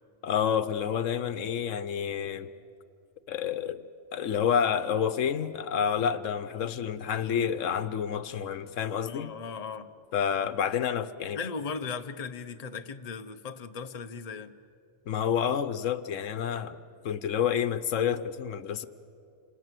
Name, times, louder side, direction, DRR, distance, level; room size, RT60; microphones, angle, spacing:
voice 1, 0.2-2.5 3.3-3.8 4.1-9.3 10.1-11.4 15.1-16.8 17.0-18.9, left 8 dB, 80° left, 13 dB, 1.2 m, -29 dB
voice 2, 9.0-9.9 11.3-14.5, left 5 dB, 35° left, 8 dB, 0.8 m, -37 dB
27.5 x 27.0 x 7.6 m, 2.6 s
omnidirectional pair, 1.3 m